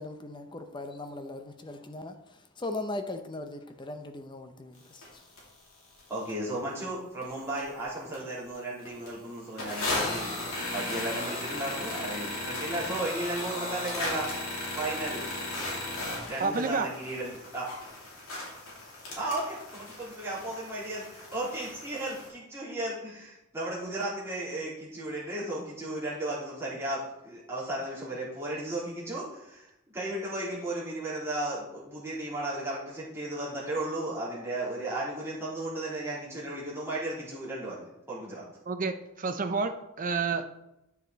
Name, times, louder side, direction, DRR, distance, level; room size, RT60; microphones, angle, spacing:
voice 1, 0.0-5.3, left 2 dB, 20° left, 7 dB, 0.7 m, -39 dB
sound 1, 5.0-5.1 5.4-5.5 5.9-6.3 6.8-6.9 7.2-7.8 8.1-8.2 8.5-8.6 8.8-9.1 9.6-22.3, left 2 dB, 70° left, 3.1 m, -36 dB
voice 2, 6.1-14.3 14.7-15.3 16.3-17.7 19.2-38.5, right 1 dB, 10° right, -8 dB, 3.3 m, -35 dB
voice 3, 16.4-16.9 38.7-39.7 40.0-40.5, right 4 dB, 40° right, 7 dB, 0.7 m, -29 dB
9.5 x 6.5 x 4.0 m, 0.89 s
head